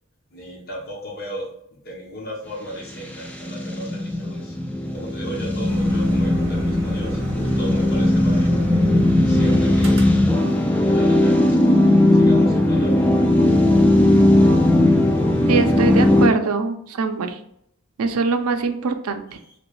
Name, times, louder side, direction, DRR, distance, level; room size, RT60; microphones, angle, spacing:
voice 1, 0.3-1.5 1.8-4.5 4.9-7.2 7.6-8.9 9.2-9.9 10.8-11.7 12.1-13.1 19.4-19.5, equal, 45° left, -2 dB, 1.1 m, -35 dB
sound 1, 3.0-16.3, left 1 dB, 5° left, 0.3 m, -18 dB
sound 2, 5.7-10.7, equal, 60° right, 0.8 m, -34 dB
voice 2, 15.5-17.4 18.0-19.2, right 4 dB, 90° right, 7 dB, 0.5 m, -22 dB
3.2 x 3.0 x 3.1 m, 0.73 s
head